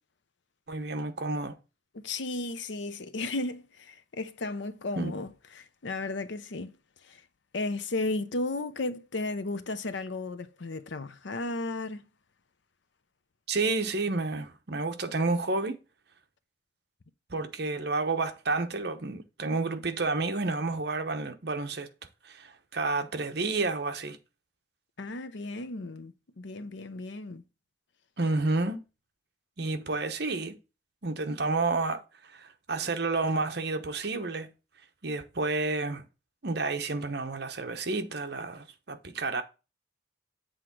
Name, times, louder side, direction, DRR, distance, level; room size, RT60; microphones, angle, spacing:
voice 1, 0.7-1.6 5.0-5.1 13.5-15.8 17.3-21.9 22.2-24.2 28.2-28.8 29.6-30.6 31.0-34.5 35.0-36.0 36.4-39.4, right 3 dB, 55° right, 0.9 m, -30 dB
voice 2, 1.9-6.7 7.1-7.2 7.5-12.0 25.0-27.4, left 2 dB, 70° left, 0.7 m, -34 dB
7.9 x 3.7 x 6.0 m
head